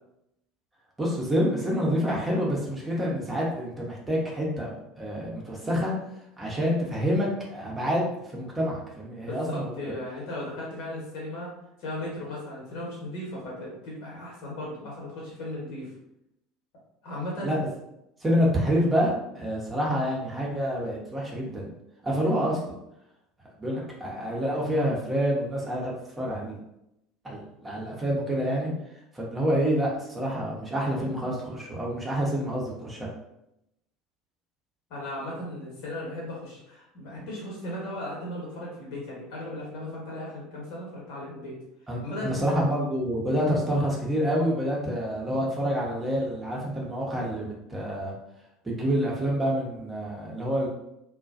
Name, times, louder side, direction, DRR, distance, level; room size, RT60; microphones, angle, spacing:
voice 1, 1.0-4.7 5.0-5.9 6.4-9.7 17.4-17.6 18.2-21.7 22.0-22.6 23.6-26.6 27.2-28.7 29.1-33.1 41.9-48.1 48.6-50.7, equal, 15° right, -4 dB, 0.8 m, -27 dB
voice 2, 9.2-11.5 11.8-15.9 17.0-17.5 34.9-41.5 42.0-42.4, left 1 dB, 60° left, -4 dB, 1.1 m, -36 dB
2.3 x 2.2 x 2.5 m, 0.83 s
figure-of-eight pair, 65°, 0 cm